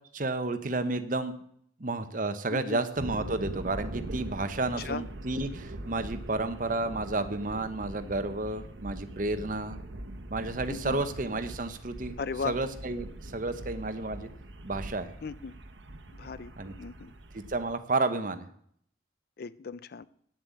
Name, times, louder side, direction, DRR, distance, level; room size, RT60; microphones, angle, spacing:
voice 1, 0.1-1.3 1.8-9.8 10.3-12.2 12.4-14.3 14.6-15.1 16.6-16.7 17.3-18.5, right 2 dB, 45° right, 0.9 m, -31 dB
voice 2, 2.5-2.8 4.8-5.0 10.7-11.0 12.2-12.6 15.2-15.5 16.2-16.5 16.8-17.1 19.4-20.1, left 5 dB, 50° left, 0.4 m, -36 dB
sound 1, 2.9-17.8, right 1 dB, 70° right, 1.1 m, -42 dB
9.1 x 7.6 x 8.2 m
head